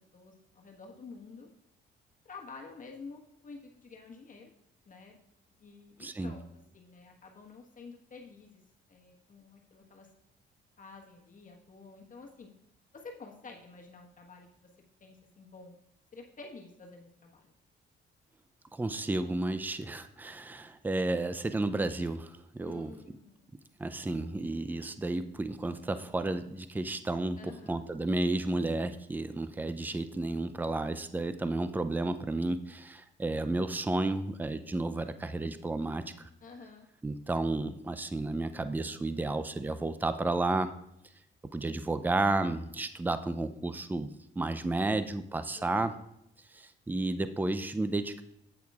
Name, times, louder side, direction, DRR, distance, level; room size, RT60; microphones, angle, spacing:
voice 1, 0.0-1.5 2.2-4.5 4.9-5.2 5.6-6.4 6.7-8.6 8.9-10.1 10.8-12.5 12.9-14.7 15.0-15.7 16.1-17.5 22.6-23.5 27.4-27.9 36.4-36.9 45.5-46.1, left 4 dB, 40° left, 1 dB, 1.3 m, -50 dB
voice 2, 6.0-6.3 18.7-22.9 23.8-36.3 37.0-40.7 41.5-45.9 46.5-48.2, right 2 dB, 10° right, 11 dB, 0.4 m, -32 dB
8.2 x 7.9 x 2.4 m, 0.79 s
cardioid pair, 90°, 20 cm